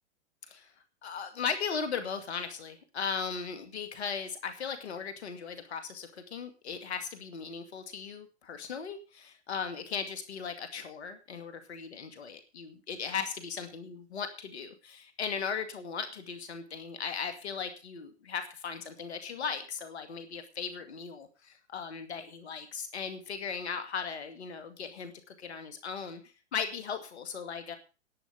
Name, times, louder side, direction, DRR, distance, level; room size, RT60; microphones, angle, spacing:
voice 1, 1.0-26.2 26.5-27.8, left 6 dB, 70° left, 8 dB, 2.4 m, -37 dB
11.0 x 9.5 x 6.7 m, 0.34 s
hypercardioid pair, 115°, 35 cm